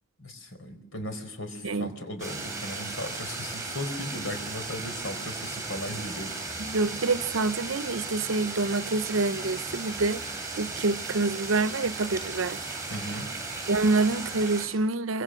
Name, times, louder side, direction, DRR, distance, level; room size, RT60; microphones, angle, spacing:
voice 1, 0.2-6.4 12.9-13.3, left 1 dB, 85° left, 4.5 m, -37 dB
sound 1, 2.2-14.7, right 3 dB, 15° right, 7.7 m, -36 dB
voice 2, 6.6-10.2 10.6-12.6 13.7-15.2, right 3 dB, 85° right, 0.8 m, -27 dB
27.0 x 24.5 x 6.4 m
head